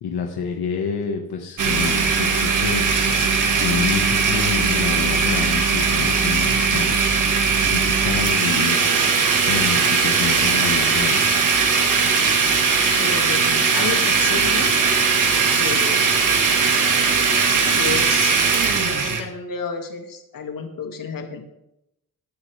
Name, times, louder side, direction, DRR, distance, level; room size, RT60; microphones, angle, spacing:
voice 1, 0.0-7.1 7.7-8.9 9.4-11.2, left 7 dB, 85° left, 2 dB, 1.7 m, -28 dB
Domestic sounds home sounds, 1.6-19.2, right 5 dB, 55° right, 2.2 m, -19 dB
voice 2, 13.0-14.8 15.5-16.3 17.8-18.3 18.8-21.4, left 5 dB, 60° left, 3 dB, 2.4 m, -31 dB
19.5 x 10.0 x 3.5 m, 0.83 s
cardioid pair, 110°, 38 cm